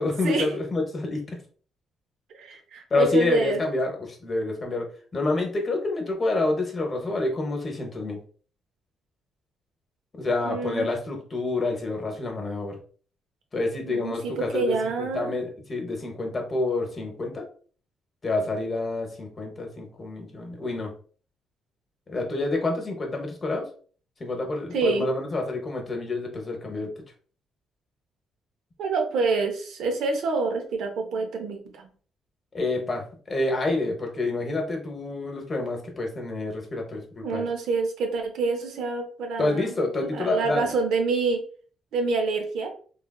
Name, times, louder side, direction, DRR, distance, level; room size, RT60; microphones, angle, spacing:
voice 1, 0.0-1.4 2.9-4.9 5.1-8.2 10.2-12.8 13.5-17.4 18.2-20.9 22.1-23.7 24.2-26.9 32.5-37.4 39.4-40.7, left 2 dB, 35° left, 2 dB, 0.8 m, -28 dB
voice 2, 2.3-3.6 10.4-10.9 13.9-15.3 24.7-25.1 28.8-31.9 37.2-41.4 41.9-42.7, right 4 dB, 80° right, 4 dB, 0.6 m, -27 dB
3.1 x 2.3 x 2.2 m, 0.43 s
cardioid pair, 90°, 0 cm